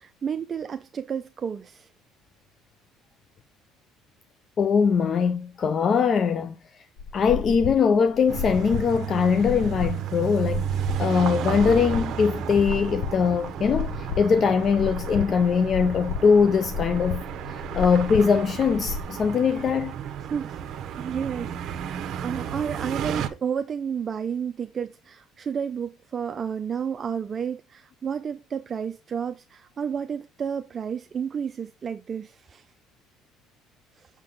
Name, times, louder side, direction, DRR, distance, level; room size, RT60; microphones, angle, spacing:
voice 1, 0.0-1.9 20.2-32.6 34.0-34.1, right 7 dB, 35° right, 0.4 m, -31 dB
voice 2, 4.6-6.6 7.1-17.2 17.5-20.0, left 6 dB, 40° left, 0.4 m, -22 dB
sound 1, 7.0-19.0, left 5 dB, 70° left, 0.8 m, -33 dB
sound 2, 8.3-23.3, right 9 dB, 55° right, 0.8 m, -33 dB
6.6 x 3.7 x 3.9 m
cardioid pair, 105°, 0 cm